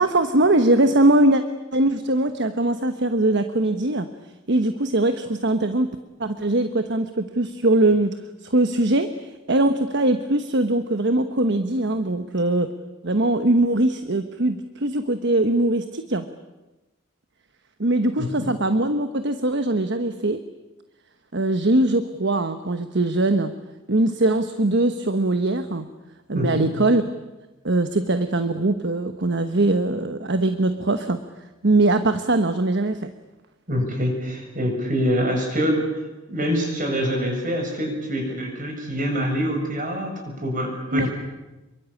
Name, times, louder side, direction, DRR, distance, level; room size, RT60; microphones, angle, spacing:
voice 1, 0.0-1.4 1.7-4.1 4.5-5.9 6.2-12.7 13.0-16.3 17.8-20.4 21.3-23.5 23.9-25.9 26.3-27.0 27.6-31.2 31.6-33.1 40.9-41.1, right 2 dB, 55° right, 9 dB, 1.2 m, -21 dB
voice 2, 26.3-26.7 33.7-36.0 36.3-41.1, equal, 40° right, 3 dB, 7.2 m, -25 dB
27.5 x 23.5 x 8.6 m, 1.1 s
head